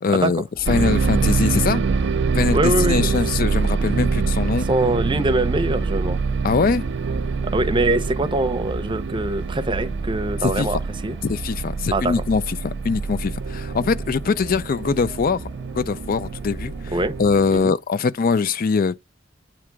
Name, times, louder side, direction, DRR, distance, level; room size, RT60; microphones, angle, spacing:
voice 1, 0.0-1.8 2.3-2.6 2.9-4.7 6.4-6.8 10.6-10.7 11.2-15.4 15.7-16.7 17.2-19.0, left 5 dB, 50° left, 0.4 m, -22 dB
sound 1, 0.5-17.4, right 1 dB, 25° left, 3.9 m, -40 dB
sound 2, 0.6-17.6, right 4 dB, 65° right, 0.5 m, -25 dB
voice 2, 2.5-3.1 4.7-6.2 7.5-11.2 11.9-12.2 16.9-17.1 17.5-17.7, right 2 dB, 25° right, 0.7 m, -23 dB
8.5 x 2.9 x 4.6 m
head